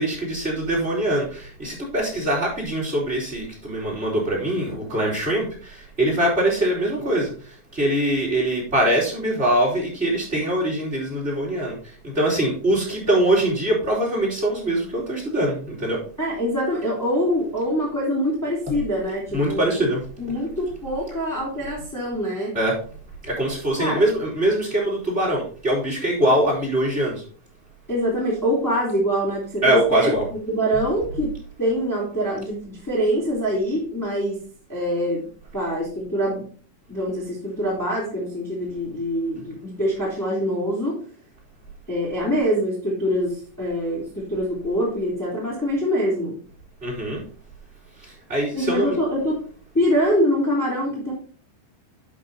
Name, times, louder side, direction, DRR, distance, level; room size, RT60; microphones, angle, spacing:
voice 1, 0.0-16.0 19.3-20.0 22.5-22.8 23.2-27.2 29.6-30.2 46.8-47.2 48.0-49.0, right 1 dB, 15° right, -3 dB, 4.0 m, -23 dB
voice 2, 16.2-19.8 20.2-22.6 23.8-24.0 27.9-31.3 31.6-34.4 34.7-35.3 35.5-36.5 36.9-41.0 41.9-46.3 48.5-49.4 49.7-51.1, equal, 5° left, -4 dB, 2.2 m, -24 dB
11.0 x 4.6 x 4.2 m, 0.43 s
omnidirectional pair, 4.6 m